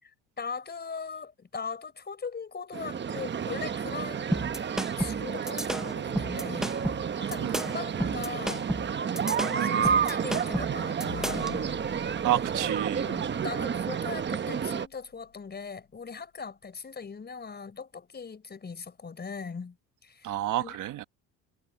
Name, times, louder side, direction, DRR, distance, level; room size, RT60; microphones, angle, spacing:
voice 1, 0.0-4.5 5.0-8.7 9.3-11.7 13.0-19.8 20.0-20.8, left 5 dB, 30° left, 4.6 m, -40 dB
sound 1, 2.7-14.9, right 7 dB, 30° right, 1.1 m, -30 dB
sound 2, 4.3-11.6, equal, ahead, 1.0 m, -32 dB
voice 2, 9.5-9.9 12.2-13.1 20.2-21.0, right 14 dB, 60° right, 1.7 m, -30 dB
sound 3, 11.0-15.6, left 17 dB, 80° left, 2.4 m, -49 dB
cardioid pair, 95°, 34 cm